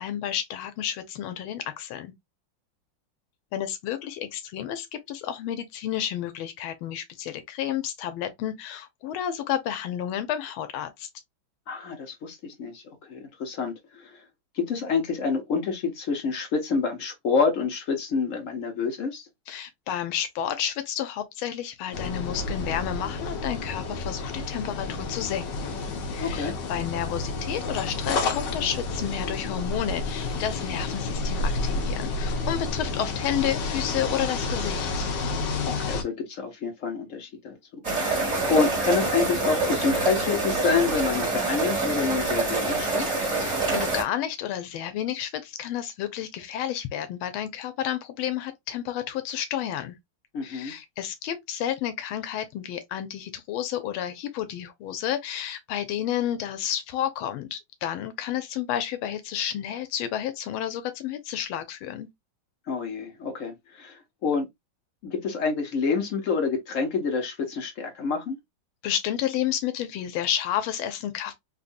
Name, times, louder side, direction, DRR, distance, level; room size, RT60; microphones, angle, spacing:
voice 1, 0.0-2.1 3.5-11.1 19.5-25.8 26.1-35.0 43.4-49.9 50.4-62.1 68.8-71.4, left 10 dB, 90° left, 1.5 m, -31 dB
voice 2, 11.7-14.2 14.5-19.3 26.2-26.5 35.6-37.6 38.0-43.2 50.3-50.7 62.7-64.5 65.0-68.4, left 5 dB, 45° left, 1.2 m, -28 dB
sound 1, 21.9-36.0, left 3 dB, 65° left, 1.4 m, -30 dB
sound 2, 37.8-44.0, right 3 dB, 25° right, 1.7 m, -26 dB
3.6 x 2.6 x 2.5 m
omnidirectional pair, 2.2 m